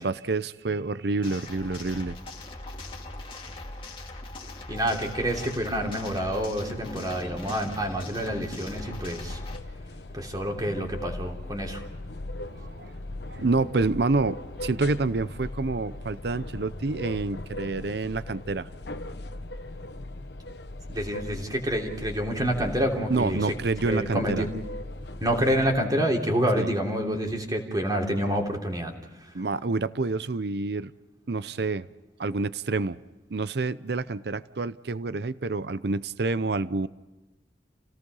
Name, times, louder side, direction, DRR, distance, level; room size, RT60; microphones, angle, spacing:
voice 1, 0.0-2.2 12.5-12.9 13.3-18.7 23.1-24.4 26.6-26.7 29.3-30.9 31.3-31.9 32.2-33.0 33.3-36.9, right 3 dB, 60° right, 0.6 m, -28 dB
sound 1, 1.2-9.6, left 2 dB, 30° left, 2.5 m, -40 dB
voice 2, 4.7-9.4 10.1-11.8 20.9-23.5 23.8-24.5 25.2-28.9 29.2-29.3, equal, 20° right, 3.1 m, -28 dB
sound 2, 8.6-25.8, left 1 dB, 65° left, 1.1 m, -39 dB
29.0 x 18.0 x 5.5 m
head